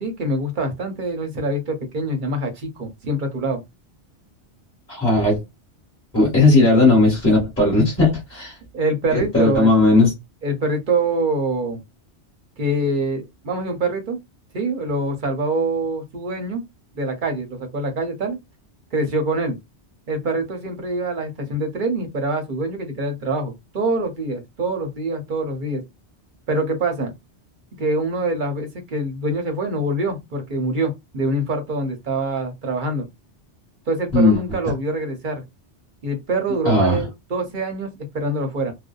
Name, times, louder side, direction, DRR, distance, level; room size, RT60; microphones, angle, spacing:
voice 1, 0.0-3.6 8.7-9.8 10.4-11.8 12.6-14.2 14.5-16.6 16.9-18.4 18.9-19.6 20.1-25.8 26.5-27.1 27.8-33.1 33.9-35.4 36.0-37.9 38.1-38.7, right 2 dB, 50° right, 0.8 m, -25 dB
voice 2, 4.9-5.4 6.1-8.5 9.1-10.1 34.1-34.4 36.6-37.0, left 2 dB, 10° left, 1.3 m, -16 dB
2.6 x 2.1 x 2.2 m
omnidirectional pair, 1.2 m